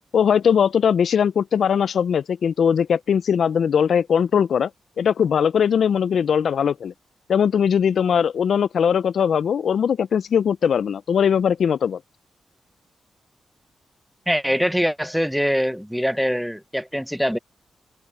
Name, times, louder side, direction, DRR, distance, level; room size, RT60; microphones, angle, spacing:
voice 1, 0.1-4.7 5.0-6.9 7.3-12.0, left 7 dB, 70° left, 0.4 m, -20 dB
voice 2, 14.3-17.4, equal, ahead, 0.7 m, -23 dB
wide cardioid pair, 145°, 0 cm